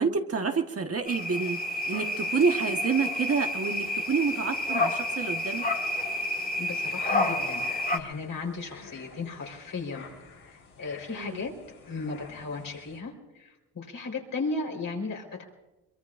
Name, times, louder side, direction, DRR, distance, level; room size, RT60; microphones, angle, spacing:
voice 1, 0.0-1.6 1.9-5.6 11.2-11.4, right 5 dB, 35° right, 5 dB, 1.4 m, -28 dB
sound 1, 1.1-8.0, left 1 dB, 25° left, 1.7 m, -29 dB
voice 2, 6.6-10.1 10.4-11.5 11.9-15.4, left 3 dB, 55° left, 1 dB, 4.2 m, -35 dB
sound 2, 7.0-13.0, left 5 dB, 85° left, 6.3 m, -50 dB
23.0 x 23.0 x 2.5 m, 1.0 s
supercardioid pair, 65°, 39 cm